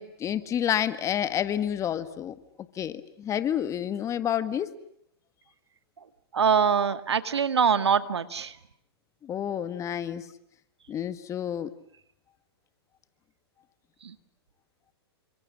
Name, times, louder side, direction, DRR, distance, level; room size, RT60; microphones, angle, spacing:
voice 1, 0.0-2.4 2.8-4.7 9.2-10.3 10.9-11.7, left 10 dB, 20° left, 12 dB, 1.7 m, -29 dB
voice 2, 6.3-8.5 14.0-14.1, right 7 dB, 85° right, 11 dB, 2.0 m, -24 dB
29.5 x 26.0 x 7.4 m, 0.71 s
hypercardioid pair, 125°, 14 cm